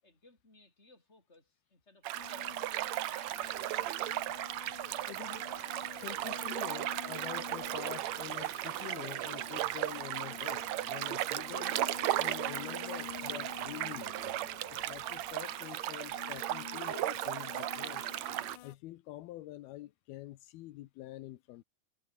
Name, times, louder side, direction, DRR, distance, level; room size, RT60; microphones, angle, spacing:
voice 1, 0.0-3.5, left 2 dB, 15° left, 6.3 m, -64 dB
sound 1, 2.0-18.6, right 15 dB, 80° right, 1.6 m, -36 dB
sound 2, 2.1-18.7, left 14 dB, 70° left, 2.2 m, -50 dB
sound 3, 3.2-15.2, right 7 dB, 50° right, 4.1 m, -61 dB
voice 2, 5.0-5.4 6.0-11.8 12.2-14.3 14.7-18.0 18.6-21.6, left 16 dB, 85° left, 2.9 m, -46 dB
omnidirectional pair, 4.3 m